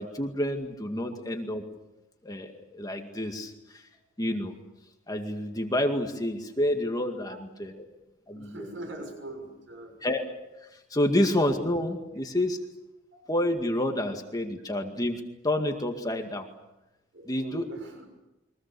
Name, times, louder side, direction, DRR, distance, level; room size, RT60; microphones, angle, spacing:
voice 1, 0.0-1.7 2.2-3.9 4.2-4.6 5.1-7.8 8.3-8.7 10.0-10.2 10.7-12.6 13.3-16.5 17.3-17.6, left 1 dB, 20° left, 4 dB, 2.1 m, -29 dB
voice 2, 8.3-10.0 13.1-13.2 17.1-18.1, right 1 dB, 90° right, 3 dB, 6.6 m, -42 dB
29.5 x 23.5 x 6.9 m, 0.96 s
head